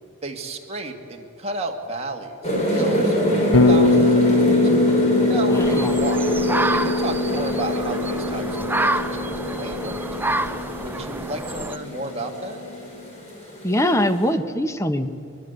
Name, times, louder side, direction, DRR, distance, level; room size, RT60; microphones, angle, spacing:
voice 1, 0.2-3.4 3.7-4.5 5.3-6.3 6.7-10.3 10.8-12.6, right 2 dB, 30° right, 2 dB, 2.1 m, -32 dB
sound 1, 2.4-14.3, equal, 30° left, 6.6 m, -26 dB
Bass guitar, 3.5-11.6, left 2 dB, 65° left, 1.0 m, -22 dB
sound 2, 5.5-11.8, right 2 dB, 10° right, 0.6 m, -28 dB
voice 2, 5.6-5.9 13.6-15.1, left 1 dB, 15° left, 8 dB, 1.1 m, -22 dB
23.5 x 21.0 x 8.1 m, 2.6 s
head